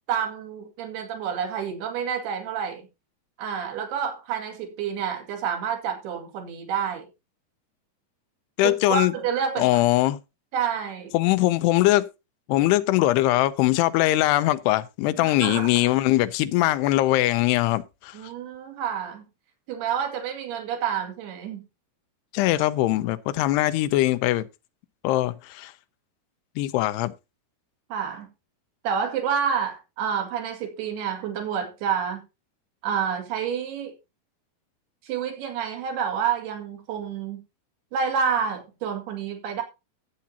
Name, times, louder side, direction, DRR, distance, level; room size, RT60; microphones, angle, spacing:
voice 1, 0.1-2.9 3.4-7.1 8.6-9.8 10.5-11.1 15.2-15.7 18.1-19.3 19.7-21.6 27.9-28.3 28.8-32.2 32.8-33.9 35.0-37.4 37.9-39.6, right 7 dB, 75° right, 4.2 m, -28 dB
voice 2, 8.6-9.1 9.6-10.2 11.1-12.1 12.5-18.2 22.3-24.5 25.0-25.7 26.6-27.1, left 16 dB, 85° left, 2.7 m, -21 dB
15.0 x 8.6 x 2.8 m
omnidirectional pair, 4.7 m